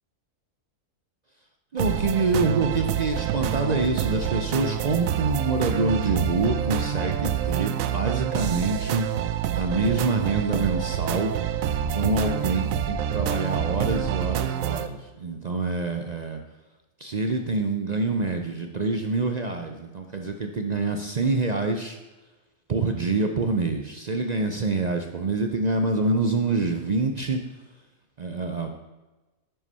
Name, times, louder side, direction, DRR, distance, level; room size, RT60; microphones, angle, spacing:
voice 1, 1.7-11.3 11.8-16.4 17.0-22.0 22.7-27.4 28.2-28.7, right 3 dB, 55° right, 5 dB, 0.4 m, -26 dB
sound 1, 1.8-14.9, right 9 dB, 75° right, 1.0 m, -27 dB
9.7 x 5.6 x 5.4 m, 1.1 s
omnidirectional pair, 1.5 m